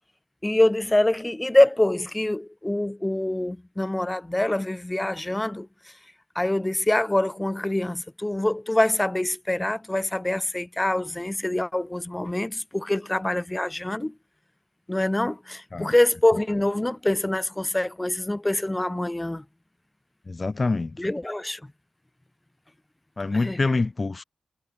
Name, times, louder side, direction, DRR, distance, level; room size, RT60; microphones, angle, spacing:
voice 1, 0.4-5.7 6.4-14.1 14.9-19.4 21.0-21.6 23.4-23.6, left 1 dB, 20° left, 7.1 m, -25 dB
voice 2, 20.3-21.0 23.2-24.2, left 3 dB, 45° left, 5.2 m, -25 dB
cardioid pair, 50°, 0 cm